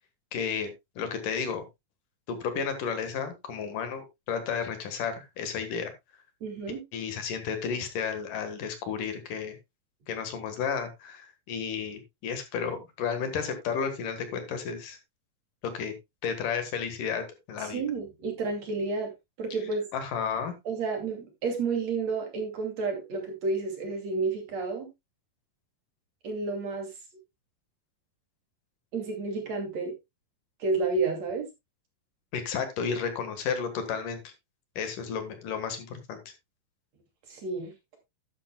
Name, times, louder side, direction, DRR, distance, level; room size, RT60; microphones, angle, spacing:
voice 1, 0.3-0.7 1.0-1.7 2.3-5.9 6.9-9.6 10.1-15.0 15.7-15.9 16.2-17.8 19.9-20.5 32.3-34.3 34.8-36.2, left 6 dB, 70° left, 8 dB, 3.1 m, -32 dB
voice 2, 6.4-6.8 17.6-19.1 19.4-19.9 20.7-24.9 26.2-26.9 28.9-29.9 30.6-31.5 37.3-37.7, right 4 dB, 50° right, 3 dB, 3.6 m, -30 dB
12.0 x 10.5 x 2.3 m, 0.20 s
omnidirectional pair, 4.1 m